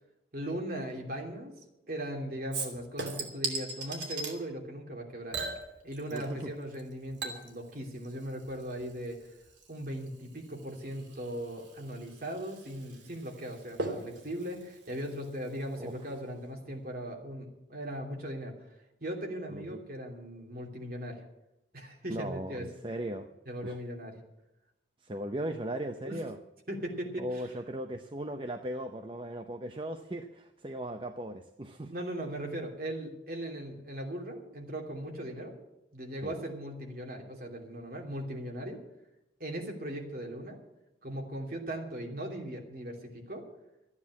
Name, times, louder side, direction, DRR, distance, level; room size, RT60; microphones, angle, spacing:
voice 1, 0.3-1.5 1.9-5.4 5.8-9.2 9.7-18.5 19.0-21.2 21.7-22.7 23.5-24.2 26.1-26.2 26.7-27.5 31.8-35.5 35.9-38.8 39.4-40.6 41.0-43.5, right 1 dB, 50° right, 1 dB, 2.9 m, -38 dB
Chink clink / Liquid, 2.5-4.4 5.3-6.5 6.7-15.8 16.1-16.2, right 3 dB, 70° right, 2.8 m, -40 dB
voice 2, 6.1-6.5 15.8-15.9 19.5-19.8 22.1-23.3 23.6-23.8 25.0-26.4 27.2-31.9 36.2-36.3, right 1 dB, 25° right, 6 dB, 0.6 m, -38 dB
13.5 x 9.7 x 8.5 m, 0.92 s
head